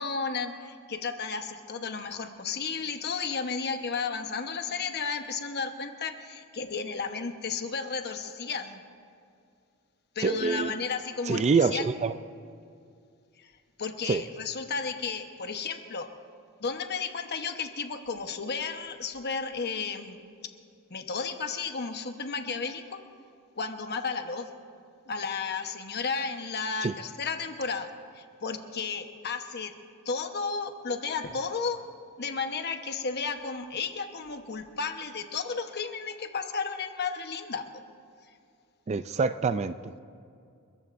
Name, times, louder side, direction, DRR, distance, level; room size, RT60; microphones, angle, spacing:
voice 1, 0.0-8.8 10.1-11.9 13.8-16.1 16.6-20.2 20.9-23.0 23.6-24.5 25.1-27.9 28.1-29.7 30.0-31.8 32.2-37.6, left 5 dB, 50° left, 6 dB, 1.1 m, -33 dB
voice 2, 10.2-10.7 11.3-12.2 14.1-14.2 26.8-26.9 38.9-39.9, right 4 dB, 30° right, 12 dB, 0.3 m, -26 dB
29.5 x 14.5 x 2.6 m, 2.4 s
head